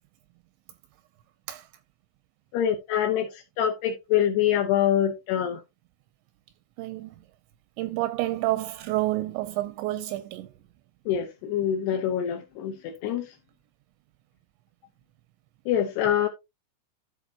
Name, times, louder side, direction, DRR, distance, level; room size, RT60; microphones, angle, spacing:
voice 1, 2.5-3.3 3.6-5.6 11.1-13.3 15.7-16.3, left 10 dB, 75° left, 2.7 m, -25 dB
voice 2, 6.8-7.2 7.8-10.5 11.9-12.0, right 16 dB, 85° right, 2.7 m, -29 dB
13.5 x 4.5 x 2.8 m
omnidirectional pair, 5.5 m